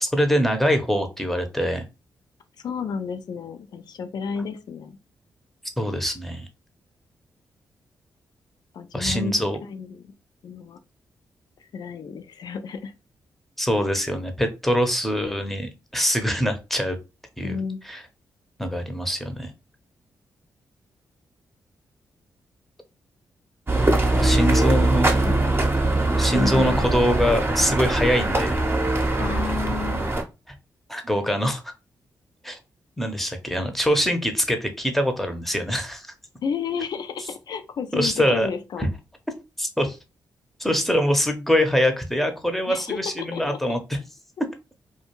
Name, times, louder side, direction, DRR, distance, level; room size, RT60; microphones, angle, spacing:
voice 1, 0.0-1.8 5.8-6.5 8.9-9.6 13.6-17.0 17.4-17.6 17.8-18.0 18.6-19.5 24.2-25.2 26.2-28.5 30.9-31.6 32.4-32.6 33.0-36.1 37.9-38.5 38.8-38.9 39.6-40.0 40.6-44.0, equal, 5° left, 0.7 m, -23 dB
voice 2, 2.6-5.0 8.7-9.3 9.6-10.1 10.4-10.8 11.7-12.9 17.4-17.8 23.9-25.5 26.3-26.8 29.2-30.1 36.4-38.9 42.7-43.6, left 6 dB, 65° left, 0.4 m, -32 dB
sound 1, 23.7-30.2, right 2 dB, 30° right, 0.8 m, -22 dB
2.3 x 2.2 x 2.9 m
supercardioid pair, 45°, 8 cm